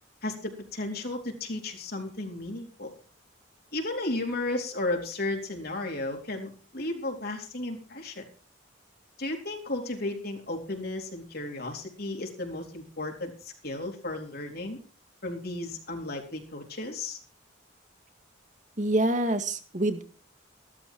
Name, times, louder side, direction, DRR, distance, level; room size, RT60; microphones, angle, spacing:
voice 1, 0.2-2.9 3.7-8.2 9.2-14.8 15.2-17.2, left 2 dB, 55° left, 2 dB, 4.0 m, -34 dB
voice 2, 18.8-20.0, right 1 dB, 40° right, 8 dB, 2.1 m, -26 dB
16.0 x 13.5 x 4.7 m, 0.38 s
head